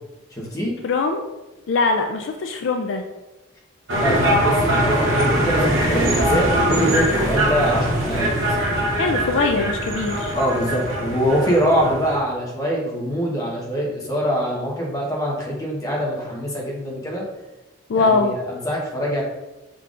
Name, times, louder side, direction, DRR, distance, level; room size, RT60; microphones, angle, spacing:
voice 1, 0.3-0.7 4.0-8.6 10.4-17.2 17.9-19.2, equal, 15° left, -3 dB, 1.0 m, -23 dB
voice 2, 0.8-1.2 1.7-3.0 9.0-10.3 17.9-18.3, left 4 dB, 60° left, 4 dB, 0.3 m, -21 dB
sound 1, 3.9-12.2, right 1 dB, 65° right, 1.1 m, -22 dB
5.5 x 3.7 x 2.4 m, 1.1 s
head